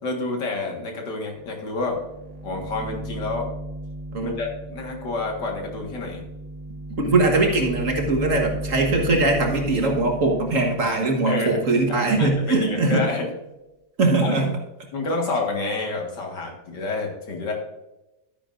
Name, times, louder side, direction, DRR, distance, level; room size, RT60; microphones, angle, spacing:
voice 1, 0.0-2.0 2.4-3.5 4.2-6.2 11.2-11.6 11.9-13.3 14.2-14.4 14.9-17.5, left 3 dB, 70° left, 1 dB, 2.4 m, -29 dB
sound 1, 1.4-1.5 1.8-12.9, right 1 dB, 75° right, 2.1 m, -35 dB
voice 2, 6.9-13.0 14.0-14.5, right 2 dB, 45° right, 2 dB, 1.6 m, -21 dB
12.0 x 9.9 x 2.6 m, 0.96 s
omnidirectional pair, 2.0 m